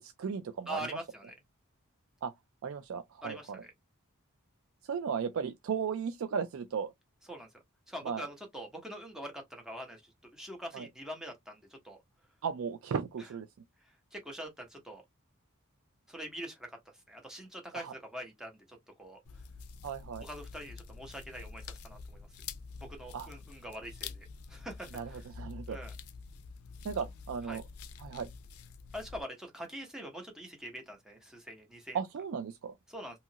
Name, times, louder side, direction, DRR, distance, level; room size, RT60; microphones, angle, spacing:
voice 1, 0.0-1.0 2.2-2.3 2.6-3.6 4.8-6.9 8.0-8.3 10.7-10.9 12.4-13.5 17.7-17.9 19.8-20.3 23.1-23.3 24.9-25.8 26.8-27.6 28.0-28.3 31.9-32.7, right 6 dB, 60° right, 0.3 m, -36 dB
voice 2, 0.7-1.3 3.2-3.7 7.3-7.5 7.9-12.0 13.9-15.0 16.1-19.2 20.2-22.3 22.9-25.2 25.7-25.9 27.5-27.6 28.9-32.0 32.9-33.2, equal, 5° right, 0.8 m, -44 dB
sound 1, 19.2-29.2, left 5 dB, 80° left, 0.4 m, -47 dB
2.8 x 2.4 x 2.7 m
head